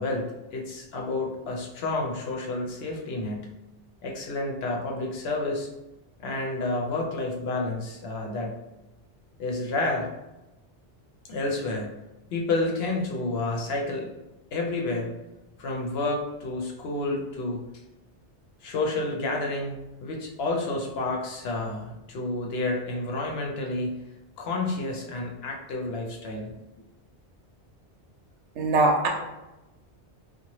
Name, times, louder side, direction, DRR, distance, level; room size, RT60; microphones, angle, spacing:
voice 1, 0.0-3.5 4.0-5.7 6.2-8.5 9.4-10.1 11.3-12.0 12.3-14.1 14.5-15.1 15.6-17.6 18.6-19.7 20.0-24.0 24.4-26.5, left 2 dB, 65° left, 0 dB, 0.8 m, -30 dB
voice 2, 28.6-29.1, right 2 dB, 80° right, 1 dB, 0.9 m, -21 dB
2.8 x 2.3 x 3.0 m, 0.99 s
omnidirectional pair, 1.2 m